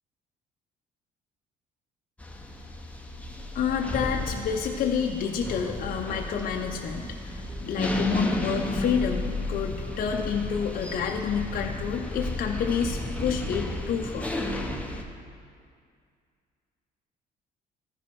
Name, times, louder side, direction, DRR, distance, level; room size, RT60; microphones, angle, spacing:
sound 1, 2.2-15.0, left 1 dB, 10° left, 0.7 m, -32 dB
voice 1, 3.3-9.2 9.5-14.3, left 7 dB, 55° left, 2 dB, 0.6 m, -29 dB
14.0 x 5.1 x 4.5 m, 2.2 s
cardioid pair, 110°, 17 cm